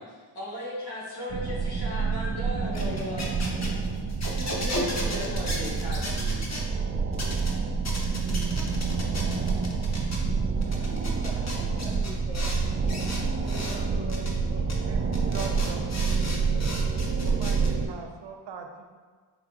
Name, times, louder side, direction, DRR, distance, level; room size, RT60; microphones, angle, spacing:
voice 1, 0.0-3.3 4.4-6.4, left 1 dB, 55° left, -6 dB, 1.5 m, -36 dB
sound 1, 1.3-17.9, right 5 dB, 30° right, 0.3 m, -28 dB
sound 2, 2.6-6.6 7.1-7.5 7.8-10.2 10.6-12.6 12.9-13.8 14.1-14.3 14.7-14.8 15.1-17.7, left 1 dB, 35° left, 0.8 m, -35 dB
voice 2, 10.1-15.0, equal, 10° right, -6 dB, 1.2 m, -44 dB
voice 3, 14.7-15.9 17.2-18.8, right 5 dB, 65° right, 4 dB, 0.6 m, -41 dB
4.7 x 3.4 x 2.4 m, 1.5 s
cardioid pair, 50°, 47 cm